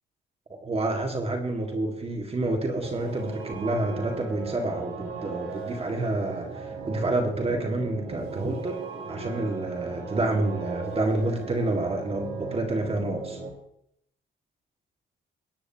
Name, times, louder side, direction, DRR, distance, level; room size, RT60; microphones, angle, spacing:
voice 1, 0.5-8.8 9.1-13.4, right 2 dB, 30° right, 3 dB, 2.0 m, -28 dB
sound 1, 2.8-13.5, right 4 dB, 85° right, 3.3 m, -37 dB
22.5 x 9.8 x 2.9 m, 0.72 s
cardioid pair, 90°, 20 cm